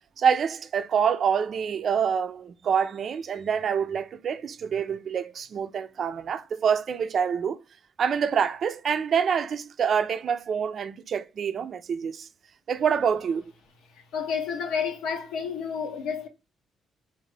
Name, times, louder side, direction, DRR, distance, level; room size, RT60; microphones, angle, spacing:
voice 1, 0.2-7.6 8.0-12.3 12.7-13.5, right 7 dB, 55° right, 0.3 m, -26 dB
voice 2, 13.9-16.3, left 6 dB, 90° left, 0.8 m, -30 dB
3.7 x 2.4 x 3.2 m
cardioid pair, 90°, 0 cm